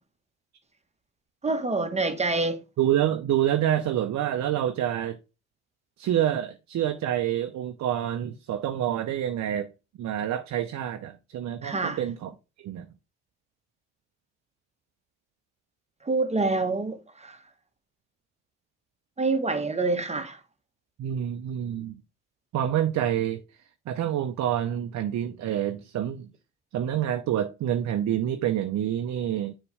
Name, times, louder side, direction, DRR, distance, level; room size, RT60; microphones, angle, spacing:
voice 1, 1.4-2.6 11.6-12.0 16.0-17.4 19.2-20.4, right 3 dB, 20° right, 1.2 m, -26 dB
voice 2, 2.8-5.2 6.0-9.7 10.0-12.3 12.6-12.9 21.0-22.0 22.5-23.4 23.9-26.3 26.7-29.5, right 11 dB, 55° right, 0.7 m, -27 dB
6.8 x 3.2 x 4.8 m
hypercardioid pair, 55°, 33 cm